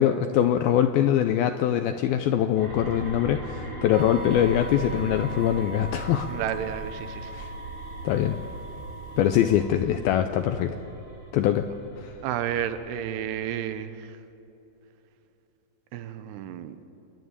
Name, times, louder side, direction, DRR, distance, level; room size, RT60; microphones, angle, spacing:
voice 1, 0.0-6.3 7.3-7.5 8.0-8.4 9.2-10.8 11.3-11.7 12.0-12.1, left 10 dB, 85° left, 8 dB, 2.2 m, -23 dB
sound 1, 2.6-13.3, right 1 dB, 35° right, 5.7 m, -40 dB
sound 2, 3.9-9.5, right 2 dB, 60° right, 2.7 m, -41 dB
voice 2, 6.3-7.3 12.2-14.1 15.9-16.8, right 10 dB, 80° right, 10 dB, 2.8 m, -31 dB
28.5 x 11.0 x 9.6 m, 3.0 s
omnidirectional pair, 5.0 m